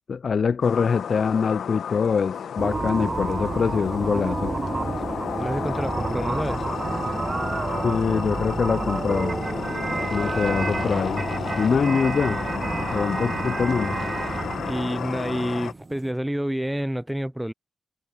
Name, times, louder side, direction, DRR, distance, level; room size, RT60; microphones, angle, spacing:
voice 1, 0.1-4.5 7.8-9.3 10.1-11.3 11.6-12.4 12.9-14.0, left 6 dB, 65° left, 0.4 m, -24 dB
sound 1, 0.6-15.7, left 8 dB, 85° left, 1.1 m, -33 dB
sound 2, 2.6-16.1, right 3 dB, 40° right, 1.2 m, -29 dB
voice 2, 5.4-6.7 14.6-17.5, right 1 dB, 10° right, 0.4 m, -28 dB
cardioid pair, 50°, 0 cm